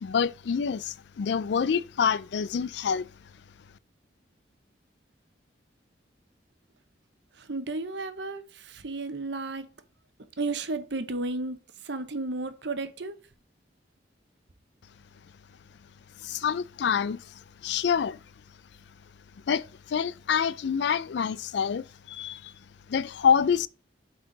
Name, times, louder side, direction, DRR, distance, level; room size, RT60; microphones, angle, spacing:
voice 1, 0.0-3.1 16.2-17.3 17.6-18.2 19.5-22.5 22.9-23.7, left 7 dB, 70° left, 0.4 m, -27 dB
voice 2, 7.4-9.7 10.4-11.6 11.8-13.1, right 3 dB, 70° right, 0.9 m, -33 dB
7.8 x 4.4 x 3.9 m
head